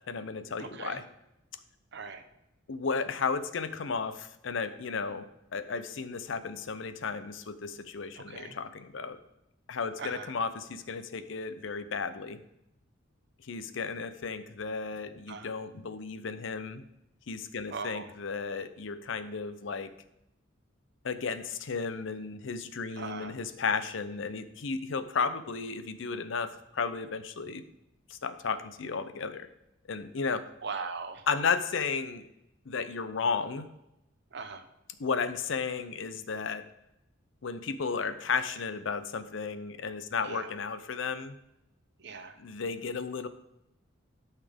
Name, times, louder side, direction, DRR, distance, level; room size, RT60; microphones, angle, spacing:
voice 1, 0.1-1.0 2.7-5.3 5.5-9.2 9.7-12.4 13.5-16.8 17.3-19.9 21.0-27.6 28.1-29.5 29.9-30.4 31.3-32.3 32.7-33.7 35.0-36.6 37.4-41.4 42.4-43.3, left 5 dB, 70° left, 12 dB, 0.6 m, -34 dB
voice 2, 0.6-1.0 1.9-2.2 8.2-8.5 10.0-10.3 15.3-15.5 17.7-18.1 23.0-23.3 30.6-31.2 34.3-34.7 40.2-40.5 42.0-42.3, right 5 dB, 60° right, 7 dB, 0.9 m, -39 dB
12.0 x 5.7 x 3.5 m, 0.86 s
head